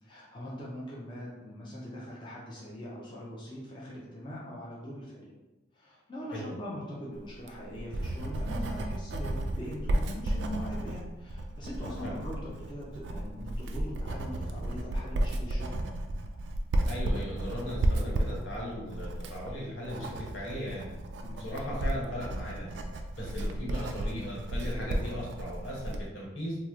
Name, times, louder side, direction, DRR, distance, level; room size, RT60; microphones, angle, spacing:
voice 1, 0.0-5.3 5.7-15.7 21.2-21.4, equal, 25° left, -5 dB, 0.5 m, -41 dB
Writing, 7.3-26.1, right 1 dB, 65° right, 0.3 m, -33 dB
voice 2, 16.8-20.9 21.4-22.7 23.2-26.6, equal, 80° left, -5 dB, 1.1 m, -37 dB
3.0 x 2.0 x 3.5 m, 1.1 s
head